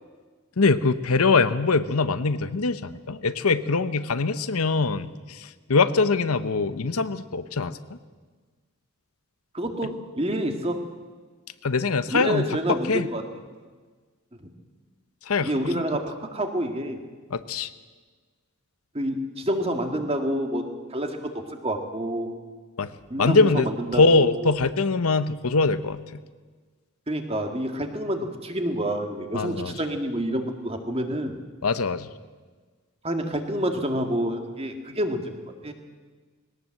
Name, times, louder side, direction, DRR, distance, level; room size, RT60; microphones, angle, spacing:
voice 1, 0.6-7.8 11.6-13.1 15.3-15.9 17.3-17.7 22.8-22.9 23.2-26.0 29.3-29.8 31.6-32.1, left 3 dB, 80° left, 12 dB, 0.9 m, -23 dB
voice 2, 9.5-10.8 12.1-13.2 15.4-17.0 18.9-20.7 20.9-22.4 23.1-24.4 27.1-31.4 33.0-35.3 35.6-35.7, equal, 25° right, 5 dB, 2.0 m, -28 dB
20.5 x 18.0 x 7.7 m, 1.4 s
head